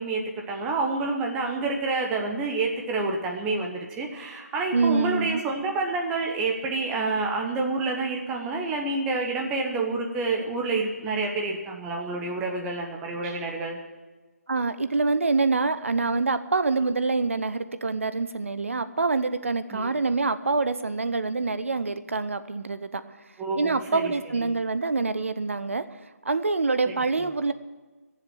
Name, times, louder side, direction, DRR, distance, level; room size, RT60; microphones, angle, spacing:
voice 1, 0.0-13.8 19.7-19.9 23.4-24.5 26.9-27.0 27.2-27.3, right 3 dB, 10° right, 1 dB, 1.0 m, -28 dB
voice 2, 4.7-5.4 14.5-23.0 23.6-25.8 26.2-27.5, right 3 dB, 55° right, 12 dB, 0.9 m, -25 dB
16.0 x 7.4 x 9.3 m, 1.3 s
figure-of-eight pair, 150°, 8 cm